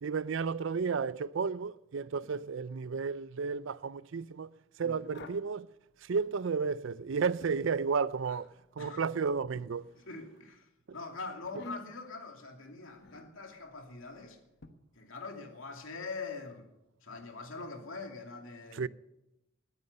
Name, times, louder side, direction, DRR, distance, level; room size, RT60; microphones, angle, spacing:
voice 1, 0.0-4.5 4.8-5.7 6.0-8.5 8.8-9.9 10.9-11.0 18.7-18.9, right 5 dB, 65° right, 0.4 m, -32 dB
sound 1, 4.9-5.5 7.0-7.8 9.5-10.4 11.4-12.1 13.0-13.3 14.6-14.7, left 2 dB, 55° left, 1.1 m, -49 dB
voice 2, 10.1-14.4 15.0-16.7 17.0-18.9, left 4 dB, 75° left, 2.7 m, -43 dB
20.0 x 9.5 x 6.8 m
head